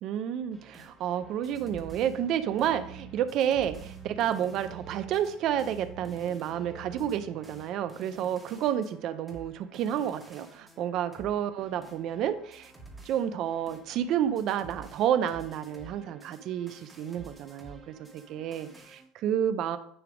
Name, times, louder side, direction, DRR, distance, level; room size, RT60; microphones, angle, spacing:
voice 1, 0.0-12.7 13.1-19.8, right 10 dB, 35° right, 11 dB, 0.5 m, -30 dB
sound 1, 0.5-19.0, right 2 dB, 5° right, 1.2 m, -52 dB
sound 2, 1.2-7.6, right 7 dB, 55° right, 1.2 m, -47 dB
9.9 x 3.3 x 5.0 m, 0.65 s
cardioid pair, 175°, 0 cm